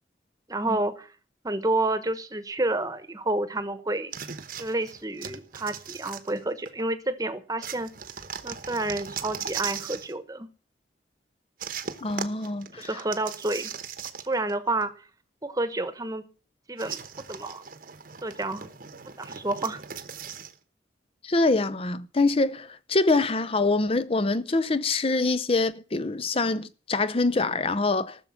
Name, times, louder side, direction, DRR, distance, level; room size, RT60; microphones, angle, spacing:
voice 1, 0.5-1.1 1.4-4.1 4.6-7.9 8.4-10.5 12.8-13.7 14.3-14.9 15.4-16.3 16.7-17.0 17.3-17.6 18.2-18.7 19.2-19.8, right 2 dB, 20° right, 1.1 m, -29 dB
sound 1, 4.1-6.8 7.6-10.1 11.6-14.5 14.8-14.9 16.8-20.5, right 7 dB, 50° right, 1.1 m, -38 dB
voice 2, 12.0-12.9 21.2-28.2, left 3 dB, 35° left, 0.6 m, -25 dB
14.5 x 6.8 x 7.2 m
head